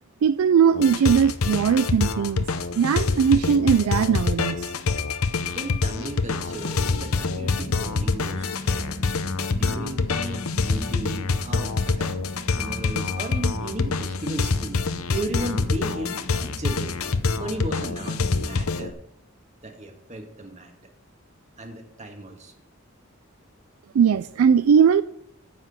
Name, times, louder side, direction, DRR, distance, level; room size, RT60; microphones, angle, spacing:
voice 1, 0.2-2.4 2.8-4.7 23.9-25.0, right 7 dB, 90° right, 0.4 m, -19 dB
sound 1, 0.7-18.9, left 4 dB, 85° left, 0.8 m, -26 dB
voice 2, 5.5-9.0 9.5-12.1 12.6-14.9 15.1-17.0 17.4-19.0 19.6-20.7 21.6-22.5, right 1 dB, 35° right, 1.7 m, -35 dB
sound 2, 6.4-18.6, equal, 40° left, 1.2 m, -40 dB
9.5 x 5.9 x 8.0 m
head